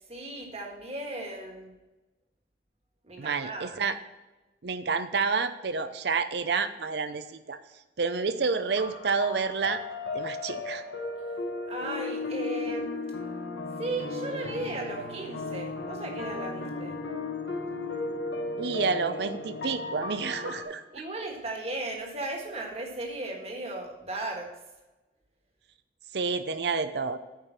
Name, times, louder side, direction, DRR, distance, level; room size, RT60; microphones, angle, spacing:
voice 1, 0.1-1.8 3.0-3.8 11.7-12.9 13.8-17.0 20.9-24.5, right 2 dB, 35° right, 1 dB, 1.6 m, -36 dB
voice 2, 3.2-3.9 4.6-7.6 8.0-9.8 10.1-10.8 18.6-20.8 26.1-27.2, right 4 dB, 65° right, 11 dB, 0.6 m, -29 dB
sound 1, 8.8-20.6, left 3 dB, 80° left, 1.3 m, -35 dB
9.0 x 5.0 x 5.7 m, 1.1 s
head